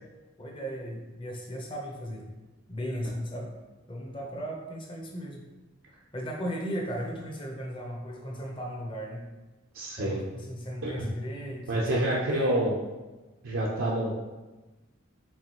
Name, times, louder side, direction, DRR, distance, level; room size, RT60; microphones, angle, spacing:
voice 1, 0.4-2.3 2.7-3.5 3.9-5.4 6.1-9.2 10.0-12.7, equal, 25° left, -1 dB, 0.7 m, -36 dB
voice 2, 9.7-10.2 10.8-11.1 11.7-12.8 13.4-14.3, right 1 dB, 85° right, -4 dB, 0.6 m, -28 dB
4.6 x 3.8 x 2.9 m, 1.2 s
head